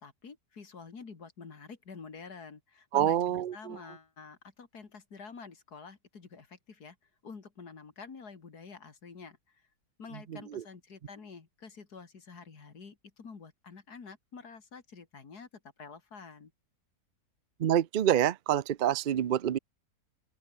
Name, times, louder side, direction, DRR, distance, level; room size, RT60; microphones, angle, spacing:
voice 1, 0.0-7.0 7.2-9.6 10.0-15.5 15.8-16.5, left 5 dB, 80° left, 3.0 m, -48 dB
voice 2, 2.9-3.8 10.3-10.6 17.6-19.6, right 10 dB, 60° right, 0.5 m, -27 dB
open air
omnidirectional pair, 1.6 m